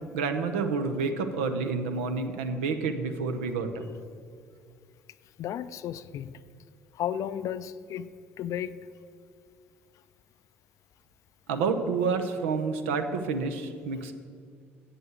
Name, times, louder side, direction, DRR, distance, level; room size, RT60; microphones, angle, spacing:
voice 1, 0.1-3.8 11.5-14.1, right 4 dB, 75° right, 0.8 m, -29 dB
voice 2, 5.4-6.3 6.9-8.1 8.4-8.8, left 10 dB, 55° left, 0.4 m, -33 dB
8.1 x 7.9 x 7.9 m
hypercardioid pair, 55°, 7 cm